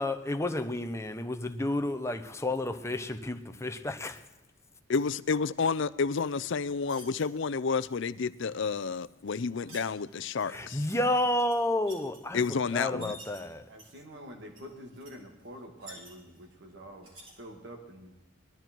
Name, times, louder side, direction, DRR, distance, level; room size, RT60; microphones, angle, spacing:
voice 1, 0.0-4.2 10.5-12.4 12.7-13.6, left 1 dB, 15° left, 7 dB, 0.9 m, -31 dB
voice 2, 4.9-10.8 12.3-13.1, left 5 dB, 70° left, 17 dB, 0.6 m, -30 dB
sound 1, 6.2-7.3 9.0-9.9 10.4-11.0 11.3-12.2 12.8-13.4 13.8-14.2 14.6-14.7 14.9-15.1 15.4-16.5 17.0-17.3, right 1 dB, 75° right, 6.2 m, -50 dB
voice 3, 13.7-17.1 17.4-18.1, equal, 60° right, 3 dB, 2.3 m, -47 dB
19.5 x 12.5 x 4.6 m, 0.95 s
head